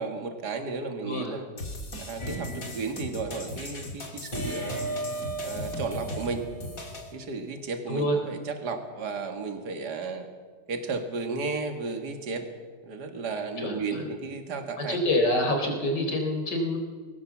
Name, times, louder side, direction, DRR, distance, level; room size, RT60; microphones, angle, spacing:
voice 1, 0.0-1.5 2.1-4.8 5.4-6.5 7.1-10.3 10.7-12.5 12.9-15.0, right 4 dB, 70° right, 6 dB, 2.4 m, -33 dB
voice 2, 1.0-1.3 7.9-8.2 13.6-14.0 14.8-16.8, left 1 dB, 85° left, 3 dB, 4.5 m, -27 dB
sound 1, 1.6-7.1, left 2 dB, 55° left, 2.9 m, -38 dB
sound 2, 2.2-3.1 4.3-7.1, right 2 dB, 30° left, 2.9 m, -36 dB
22.0 x 18.5 x 7.3 m, 1.5 s
omnidirectional pair, 1.8 m